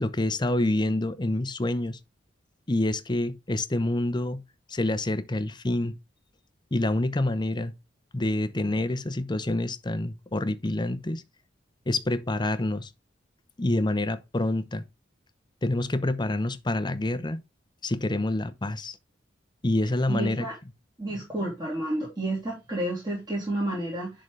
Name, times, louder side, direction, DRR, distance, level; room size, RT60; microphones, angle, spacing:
voice 1, 0.0-2.0 2.7-4.4 4.7-5.9 6.7-7.7 8.1-11.2 11.9-12.9 13.6-14.8 15.6-17.4 17.8-19.0 19.6-20.5, left 1 dB, 25° left, 0.7 m, -27 dB
voice 2, 20.1-20.5 21.0-24.1, right 1 dB, 25° right, 3.0 m, -30 dB
10.5 x 3.9 x 3.2 m
head